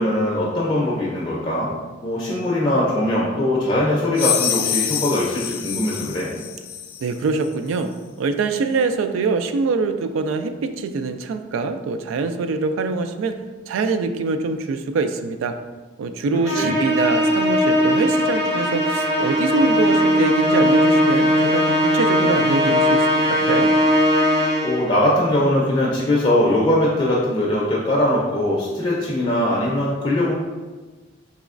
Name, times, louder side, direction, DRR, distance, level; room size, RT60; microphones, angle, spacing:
voice 1, 0.0-1.7 2.0-6.3 16.6-16.7 24.6-30.3, left 1 dB, 30° left, -4 dB, 0.4 m, -21 dB
sound 1, 4.1-7.1, left 9 dB, 90° left, 0.4 m, -26 dB
voice 2, 7.0-7.9 8.2-13.4 13.7-15.5 16.0-21.6 21.9-23.7, right 4 dB, 90° right, 9 dB, 0.3 m, -24 dB
Musical instrument, 16.4-24.9, equal, 70° right, 1.4 m, -19 dB
4.1 x 3.0 x 2.4 m, 1.3 s
head